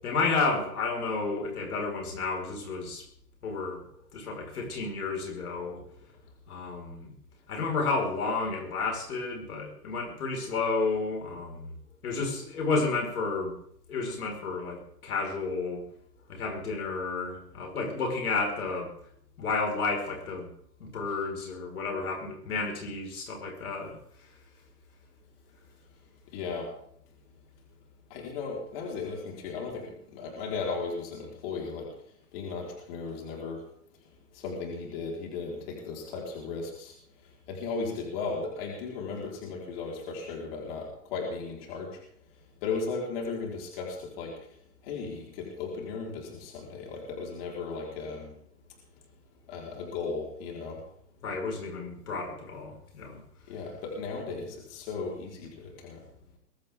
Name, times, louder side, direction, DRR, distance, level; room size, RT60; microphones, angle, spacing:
voice 1, 0.0-3.1 3.4-3.8 4.1-5.8 6.5-7.1 7.5-11.7 12.0-13.6 13.9-15.8 16.3-18.9 19.4-20.5 20.8-24.0 51.2-53.2, left 4 dB, 70° left, 2 dB, 5.4 m, -31 dB
voice 2, 26.3-26.7 28.1-33.6 34.0-42.0 42.3-48.3 49.5-50.9 53.5-56.0, left 4 dB, 40° left, -1 dB, 4.7 m, -36 dB
22.0 x 13.5 x 3.8 m, 0.66 s
hypercardioid pair, 155°, 47 cm